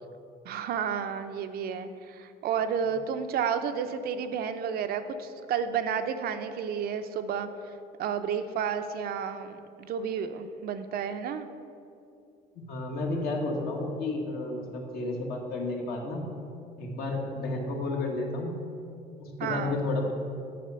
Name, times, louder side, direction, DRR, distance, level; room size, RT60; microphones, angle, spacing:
voice 1, 0.4-11.5 19.4-19.8, right 7 dB, 65° right, 9 dB, 0.5 m, -31 dB
voice 2, 12.5-16.3 16.8-18.6 19.2-20.1, left 2 dB, 65° left, 0 dB, 1.4 m, -32 dB
7.6 x 4.3 x 6.8 m, 2.6 s
cardioid pair, 110°, 17 cm